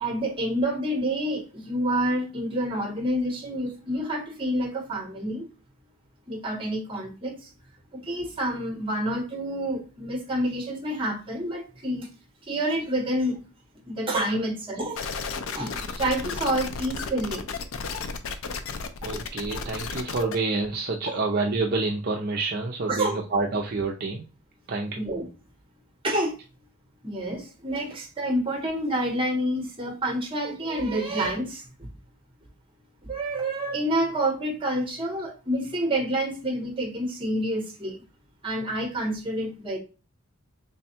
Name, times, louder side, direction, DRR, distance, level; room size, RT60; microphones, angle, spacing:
voice 1, 0.0-5.5 6.3-7.4 7.9-12.1 12.5-13.4 13.9-15.0 15.5-15.7 16.0-17.5 20.2-20.3 21.1-21.2 22.9-23.2 25.0-25.3 26.0-26.3 27.0-31.6 33.1-38.0 38.4-39.8, right 1 dB, 25° right, 0.9 m, -28 dB
sound 1, 15.0-20.4, left 5 dB, 70° left, 0.5 m, -33 dB
voice 2, 19.0-24.3 24.7-25.0, right 3 dB, 45° right, 0.5 m, -28 dB
3.4 x 2.2 x 4.3 m
head